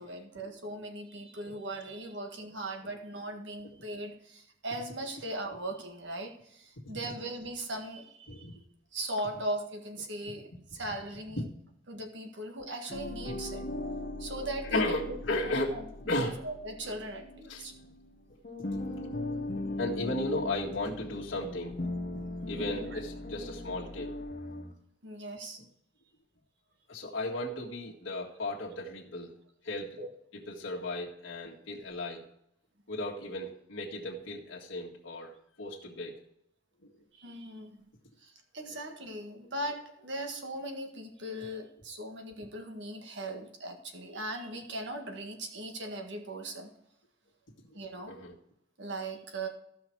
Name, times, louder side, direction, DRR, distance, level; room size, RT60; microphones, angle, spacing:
voice 1, 0.0-8.6 8.9-11.4 11.9-13.7 14.2-15.2 15.4-17.7 22.6-23.0 25.0-25.6 30.0-30.1 37.1-37.8 38.2-46.7 47.7-48.1 48.8-49.5, right 1 dB, 60° right, 3 dB, 1.6 m, -39 dB
sound 1, 12.9-18.1 18.4-24.7, left 2 dB, 40° left, 1.1 m, -39 dB
voice 2, 14.6-15.7 16.1-16.4 17.5-17.6 18.7-18.8 19.8-21.8 22.5-24.2 26.9-29.3 29.6-30.0 30.5-32.2 32.9-36.2 36.8-36.9 47.7-47.8 48.1-48.3, left 2 dB, 65° left, -4 dB, 1.8 m, -35 dB
15.0 x 5.8 x 4.6 m, 0.74 s
head